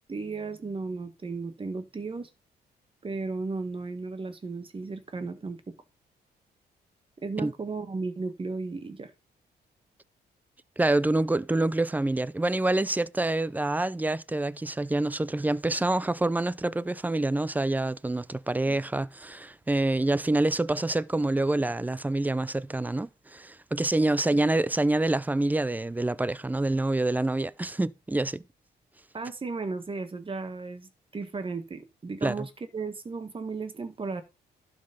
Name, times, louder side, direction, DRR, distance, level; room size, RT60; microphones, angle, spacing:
voice 1, 0.1-2.3 3.0-5.7 7.2-9.1 29.1-34.2, right 4 dB, 30° right, 1.7 m, -35 dB
voice 2, 10.8-28.4 32.2-32.5, right 2 dB, 10° right, 0.5 m, -26 dB
11.5 x 5.3 x 5.4 m
cardioid pair, 100°, 17 cm